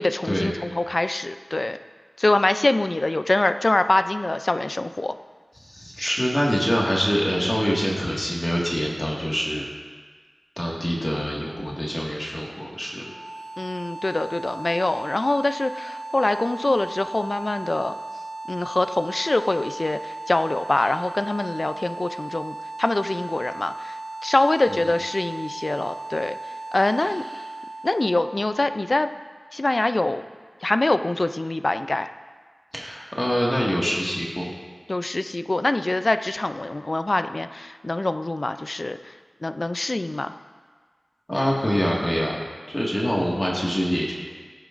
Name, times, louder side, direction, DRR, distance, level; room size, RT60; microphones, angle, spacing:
voice 1, 0.0-1.8 2.2-5.2 13.6-17.9 18.5-24.0 24.2-26.4 26.7-27.2 27.8-29.1 29.5-30.2 30.6-32.1 34.9-39.1 39.4-40.3, left 2 dB, 45° left, 10 dB, 0.4 m, -24 dB
voice 2, 5.6-9.6 10.6-13.0 24.7-24.8 32.7-34.5 41.3-42.4 42.7-44.1, equal, 20° left, -4 dB, 1.8 m, -25 dB
sound 1, 13.0-29.9, right 2 dB, 70° right, 1.7 m, -37 dB
15.5 x 9.3 x 2.5 m, 1.5 s
wide cardioid pair, 75°, 0 cm